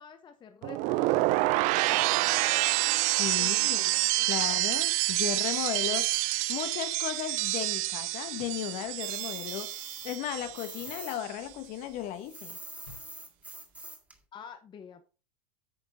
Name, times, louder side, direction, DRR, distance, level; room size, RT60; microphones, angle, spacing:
voice 1, 0.0-2.7 3.4-4.8 14.3-15.1, left 7 dB, 25° left, 1.0 m, -49 dB
sound 1, 0.6-10.7 11.0-11.5, right 20 dB, 45° right, 0.4 m, -28 dB
voice 2, 3.2-3.9 4.3-9.7 10.0-12.6, left 12 dB, 45° left, 1.3 m, -35 dB
Door, 8.2-8.8 9.9-11.6 12.8-13.3, left 3 dB, 85° left, 4.6 m, -56 dB
sound 2, 9.0-11.2 11.5-14.2, right 2 dB, 10° right, 2.0 m, -45 dB
9.4 x 6.0 x 4.0 m
hypercardioid pair, 95°, 18 cm